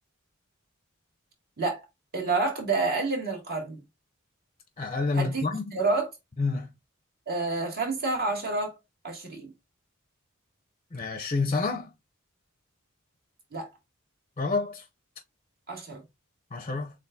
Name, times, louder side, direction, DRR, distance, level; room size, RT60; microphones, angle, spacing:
voice 1, 2.1-3.8 5.1-5.4 5.7-6.1 7.3-8.8 9.0-9.5 13.5-13.7 15.7-16.0, right 3 dB, 50° right, 2.1 m, -28 dB
voice 2, 4.8-5.7 6.4-6.7 10.9-11.9 14.4-14.8 16.5-16.9, left 3 dB, 30° left, 0.6 m, -28 dB
7.0 x 2.6 x 2.6 m
head